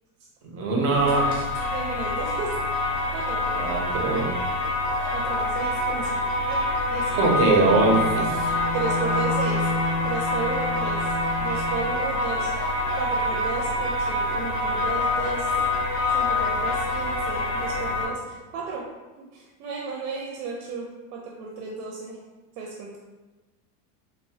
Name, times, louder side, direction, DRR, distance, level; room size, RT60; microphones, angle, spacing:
voice 1, 0.5-1.2 3.5-4.3 7.1-8.4, right 3 dB, 30° right, -1 dB, 0.4 m, -21 dB
sound 1, 0.9-18.1, left 2 dB, 30° left, 0.5 m, -26 dB
voice 2, 1.7-2.5 3.1-3.4 5.1-6.2 6.5-6.6 6.9-7.1 8.7-9.7 10.0-11.0 11.4-12.5 13.0-15.5 16.1-18.8 19.2-22.2 22.6-23.0, right 4 dB, 80° right, -2 dB, 0.6 m, -34 dB
Bowed string instrument, 7.5-12.0, left 1 dB, 85° left, 0.6 m, -31 dB
3.1 x 2.0 x 2.7 m, 1.2 s
supercardioid pair, 145°, 46 cm